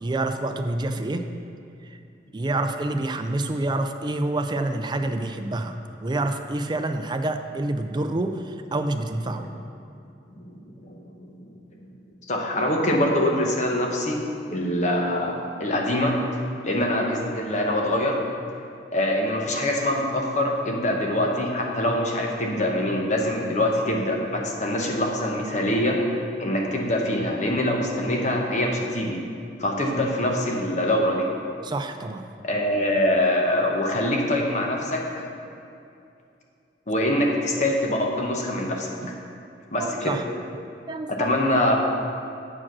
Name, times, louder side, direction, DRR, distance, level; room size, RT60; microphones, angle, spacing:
voice 1, 0.0-1.2 2.3-9.5 31.6-32.3 39.0-39.4 39.8-40.2 40.9-41.3, right 2 dB, 25° right, 7 dB, 0.4 m, -27 dB
voice 2, 10.8-11.5 11.8-11.9 12.3-14.2 14.5-16.2 16.6-18.2 18.9-26.0 26.4-29.2 29.6-31.3 32.4-35.2 36.9-38.9 39.7-40.2 41.1-41.7, left 1 dB, 40° left, 0 dB, 1.1 m, -24 dB
8.6 x 4.9 x 6.1 m, 2.6 s
head